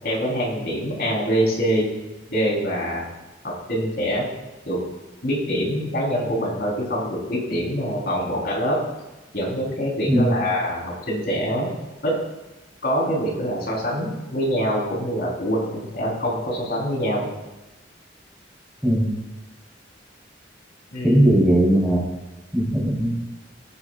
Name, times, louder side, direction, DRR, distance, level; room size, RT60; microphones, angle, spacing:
voice 1, 0.0-1.9 2.3-3.1 3.4-4.3 4.7-4.8 5.2-8.8 9.3-11.7 12.0-12.2 12.8-17.3 20.9-21.2, equal, 55° left, -3 dB, 4.2 m, -24 dB
voice 2, 10.1-10.4 18.8-19.1 21.0-22.1 22.5-23.1, right 1 dB, ahead, -5 dB, 4.0 m, -18 dB
18.5 x 9.8 x 2.5 m, 1.1 s
head